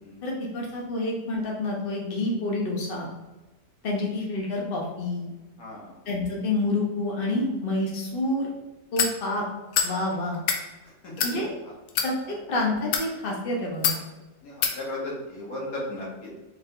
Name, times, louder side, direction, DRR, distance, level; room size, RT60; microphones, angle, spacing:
voice 1, 0.2-3.1 3.8-5.3 6.1-8.5 8.9-9.4 9.8-10.4 11.2-11.5 12.0-12.1 12.5-13.9, left 2 dB, 40° left, -2 dB, 1.1 m, -28 dB
voice 2, 5.6-5.9 11.0-11.4 12.2-12.4 14.4-16.3, left 1 dB, 55° left, -4 dB, 1.8 m, -36 dB
sound 1, 9.0-9.1 9.7-9.9 10.3-10.6 11.2-11.3 11.9-12.1 12.8-13.1 13.8-14.0 14.6-14.8, left 7 dB, 90° left, 1.3 m, -24 dB
4.1 x 3.4 x 3.7 m, 1.1 s
omnidirectional pair, 1.8 m